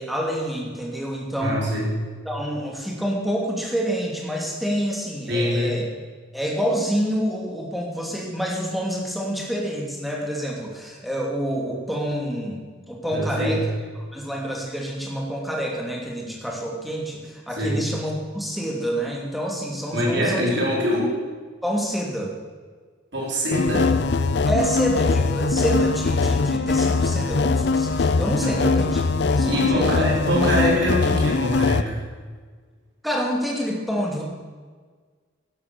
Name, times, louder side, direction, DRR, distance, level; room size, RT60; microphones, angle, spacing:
voice 1, 0.0-1.7 2.2-5.9 6.3-12.6 12.9-13.7 13.9-20.5 21.6-22.3 24.4-29.0 29.3-30.1 33.0-34.2, equal, ahead, -2 dB, 2.7 m, -27 dB
voice 2, 1.4-2.0 5.3-5.7 13.1-13.6 17.6-17.8 19.9-21.1 23.1-23.9 28.4-28.8 29.4-32.0, equal, 60° right, -4 dB, 4.8 m, -24 dB
sound 1, 23.5-31.8, left 4 dB, 55° left, 0.5 m, -21 dB
12.0 x 11.0 x 7.0 m, 1.5 s
head